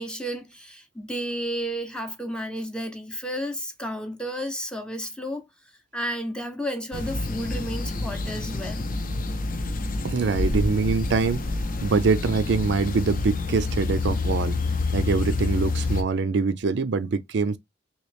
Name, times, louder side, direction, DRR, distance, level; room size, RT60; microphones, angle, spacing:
voice 1, 0.0-5.5 5.9-8.9, equal, 5° left, 0.6 m, -32 dB
sound 1, 6.9-16.0, left 3 dB, 50° left, 0.6 m, -28 dB
voice 2, 10.0-11.4 11.8-14.6 14.9-17.6, right 4 dB, 70° right, 0.4 m, -24 dB
3.1 x 2.9 x 3.1 m
head